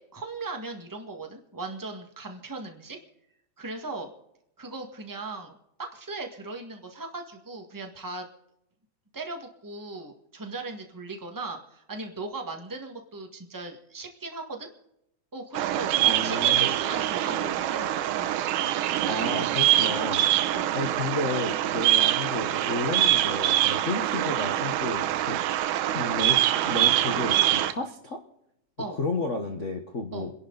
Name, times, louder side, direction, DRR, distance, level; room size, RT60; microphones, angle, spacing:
voice 1, 0.0-3.0 3.6-4.1 4.6-5.5 5.8-8.3 9.1-14.7 15.3-18.4 20.5-20.7 28.8-29.0 30.1-30.3, right 3 dB, 10° right, 3 dB, 0.9 m, -38 dB
Bird vocalization bird call bird song, 15.5-27.7, right 13 dB, 85° right, 2.3 m, -24 dB
voice 2, 16.0-16.7 19.1-20.2 20.7-25.4 25.9-28.2 28.9-30.3, left 2 dB, 70° left, 4 dB, 0.7 m, -32 dB
29.0 x 11.0 x 4.0 m, 0.80 s
omnidirectional pair, 3.6 m